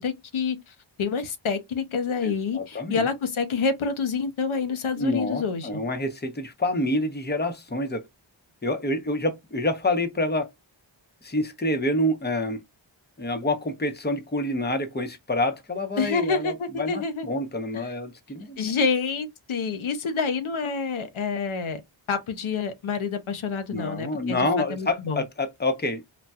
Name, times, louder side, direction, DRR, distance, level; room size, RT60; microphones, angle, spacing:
voice 1, 0.0-5.8 16.0-17.3 17.7-17.9 18.6-21.8 22.1-25.2, left 5 dB, 80° left, 0.7 m, -28 dB
voice 2, 2.2-3.1 5.0-8.0 8.6-10.5 11.2-12.6 13.2-18.6 23.7-26.0, left 1 dB, 20° left, 0.7 m, -27 dB
4.1 x 2.2 x 2.3 m
wide cardioid pair, 50°, 48 cm